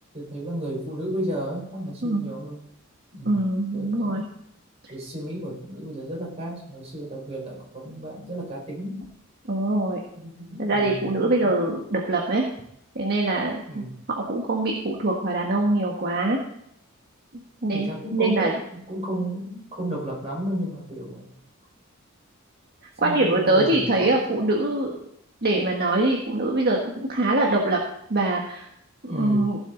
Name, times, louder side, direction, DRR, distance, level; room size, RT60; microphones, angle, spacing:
voice 1, 0.1-2.6 3.1-3.4 3.7-4.3 4.9-9.0 10.1-11.6 13.7-14.1 17.7-21.4 23.0-24.2 29.1-29.5, right 1 dB, 30° right, -3 dB, 5.2 m, -33 dB
voice 2, 3.2-4.2 9.5-10.0 10.6-12.4 12.9-13.9 14.3-16.4 17.6-18.5 23.0-24.9 25.4-27.8 28.1-28.7 29.1-29.6, right 2 dB, 50° right, 0 dB, 1.5 m, -23 dB
16.0 x 7.5 x 4.0 m, 0.74 s
head